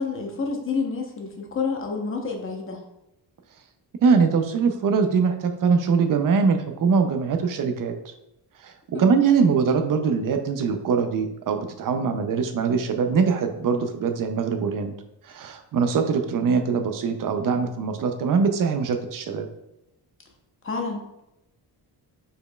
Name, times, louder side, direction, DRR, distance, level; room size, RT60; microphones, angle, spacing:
voice 1, 0.0-2.8 8.9-9.1 20.6-21.0, left 4 dB, 30° left, 1 dB, 0.8 m, -28 dB
voice 2, 4.0-7.9 8.6-14.9 15.2-19.5, right 5 dB, 55° right, 7 dB, 0.6 m, -22 dB
5.1 x 4.5 x 2.3 m, 0.86 s
cardioid pair, 145°, 40 cm